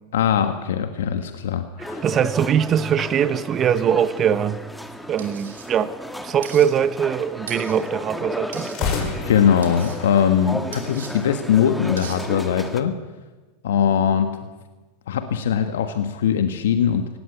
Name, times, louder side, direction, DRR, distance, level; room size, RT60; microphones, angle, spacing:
voice 1, 0.1-2.0 9.3-12.9 13.6-14.3 15.1-17.1, left 8 dB, 75° left, 8 dB, 1.5 m, -21 dB
sound 1, 1.8-12.8, left 1 dB, 5° left, 1.7 m, -34 dB
voice 2, 2.0-4.6 5.1-5.9 6.2-8.9, right 8 dB, 35° right, 13 dB, 1.3 m, -21 dB
sound 2, 2.8-4.6 8.6-11.7, left 5 dB, 50° left, 5.9 m, -33 dB
sound 3, 5.2-5.7 6.4-6.7 7.5-7.8 8.5-8.8 9.6-10.0 10.7-11.1 12.0-12.2, right 7 dB, 85° right, 3.7 m, -39 dB
19.0 x 16.5 x 8.4 m, 1.2 s
hypercardioid pair, 100°, 0 cm